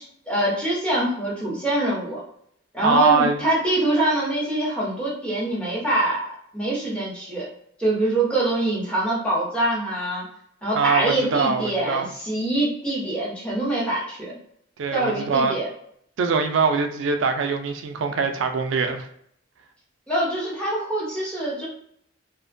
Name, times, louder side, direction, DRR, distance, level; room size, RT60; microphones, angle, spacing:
voice 1, 0.0-2.2 2.7-6.3 6.5-7.5 7.8-10.3 10.6-14.3 14.9-15.7 20.1-21.7, right 1 dB, 5° left, -6 dB, 0.8 m, -24 dB
voice 2, 2.8-3.4 10.7-12.1 14.8-15.6 16.2-19.1, right 5 dB, 80° right, 6 dB, 0.4 m, -22 dB
2.5 x 2.1 x 2.5 m, 0.70 s
head